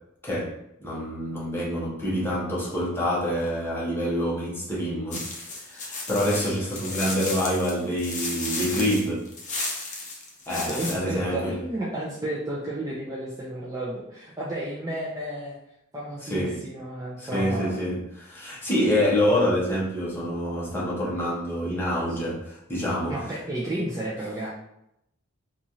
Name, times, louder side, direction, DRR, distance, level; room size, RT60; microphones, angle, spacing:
voice 1, 0.8-9.3 10.5-11.5 16.2-16.6 17.2-23.1, equal, 10° left, -6 dB, 0.8 m, -27 dB
sound 1, 5.1-10.9, left 3 dB, 35° left, 0.6 m, -33 dB
voice 2, 10.7-15.6 15.9-17.8 22.1-22.2 23.1-24.5, right 1 dB, 15° right, -7 dB, 0.4 m, -32 dB
2.9 x 2.4 x 2.7 m, 0.81 s
head